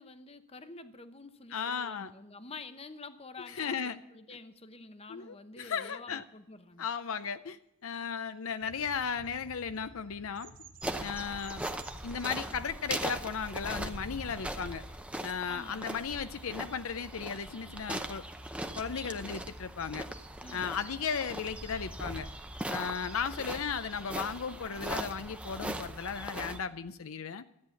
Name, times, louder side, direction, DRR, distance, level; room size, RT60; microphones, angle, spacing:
voice 1, 0.0-6.9 15.5-15.9 20.4-20.7, left 3 dB, 25° left, 10 dB, 0.8 m, -48 dB
voice 2, 1.5-2.1 3.6-4.0 5.1-6.2 6.8-10.5 11.0-11.6 12.0-14.8 15.2-18.2 18.8-20.1 20.5-22.3 22.7-27.4, left 6 dB, 70° left, 12 dB, 0.5 m, -35 dB
sound 1, 8.6-25.7, equal, 85° left, 7.0 m, -58 dB
Bird vocalization bird call bird song, 8.7-12.4, right 8 dB, 40° right, 1.1 m, -55 dB
sound 2, 10.8-26.6, right 1 dB, 5° right, 0.7 m, -40 dB
13.5 x 9.5 x 7.0 m, 0.86 s
head